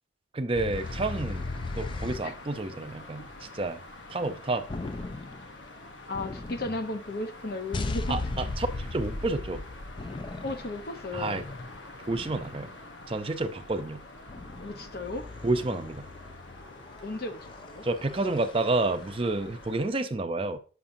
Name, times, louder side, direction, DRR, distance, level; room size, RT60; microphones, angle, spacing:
voice 1, 0.3-1.4 1.8-3.3 3.5-3.8 4.1-4.7 8.1-9.6 11.1-11.4 12.1-12.7 13.1-14.0 15.4-16.1 17.8-20.6, right 2 dB, 30° right, 0.5 m, -29 dB
sound 1, 0.5-2.3 4.7-5.5 6.1-7.0 7.7-12.9 14.3-19.2, left 2 dB, 25° left, 0.4 m, -37 dB
sound 2, 0.7-19.9, left 2 dB, 90° left, 1.0 m, -47 dB
voice 2, 6.1-8.2 10.4-11.4 14.6-15.3 17.0-17.8, left 2 dB, 55° left, 0.7 m, -35 dB
7.2 x 5.9 x 2.6 m
head